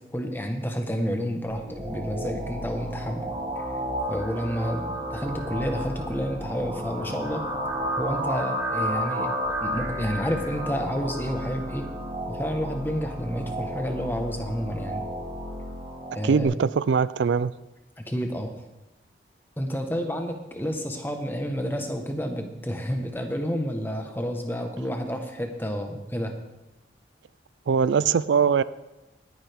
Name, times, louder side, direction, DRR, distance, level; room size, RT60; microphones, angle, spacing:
voice 1, 0.1-3.3 3.7-3.8 4.1-7.5 8.0-9.3 9.6-11.9 12.3-15.1 16.1-16.5 18.0-18.5 19.6-26.4, equal, 10° left, 4 dB, 1.2 m, -30 dB
sound 1, 1.5-16.4, equal, 25° right, 4.3 m, -32 dB
voice 2, 16.2-17.5 27.7-28.6, right 6 dB, 80° right, 17 dB, 0.4 m, -21 dB
18.0 x 10.0 x 3.5 m, 0.99 s
head